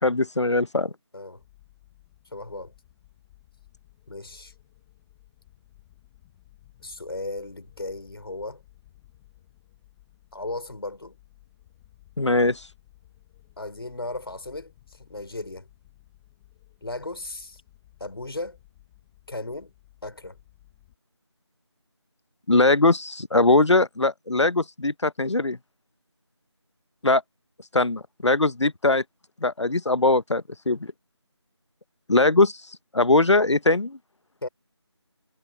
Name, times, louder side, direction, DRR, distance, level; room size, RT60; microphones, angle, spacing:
voice 1, 0.0-0.9 12.2-12.7 22.5-25.6 27.0-27.2 27.7-29.0 29.4-30.9 32.1-32.6 32.9-34.0, left 2 dB, 80° left, 1.0 m, -21 dB
sound 1, 1.4-21.0, left 15 dB, 5° left, 1.4 m, -57 dB
voice 2, 2.3-2.7 4.1-4.5 6.8-8.6 10.3-11.2 13.6-15.7 16.8-17.6 18.0-18.6 19.3-19.7 20.0-20.4 34.4-34.5, left 2 dB, 55° left, 3.7 m, -36 dB
figure-of-eight pair, 175°, 15 cm